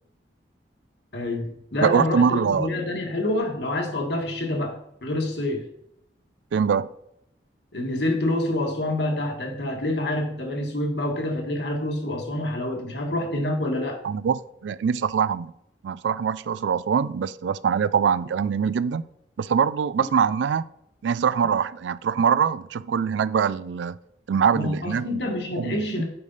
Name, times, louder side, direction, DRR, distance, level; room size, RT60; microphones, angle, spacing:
voice 1, 1.1-5.7 7.7-14.0 24.5-26.0, left 1 dB, 65° left, 2 dB, 1.6 m, -27 dB
voice 2, 1.8-2.8 6.5-6.9 14.0-15.5 15.8-19.0 19.4-20.6 21.0-24.0 24.3-25.2 25.6-26.0, right 6 dB, 75° right, 17 dB, 0.3 m, -23 dB
8.6 x 5.0 x 4.0 m, 0.76 s
head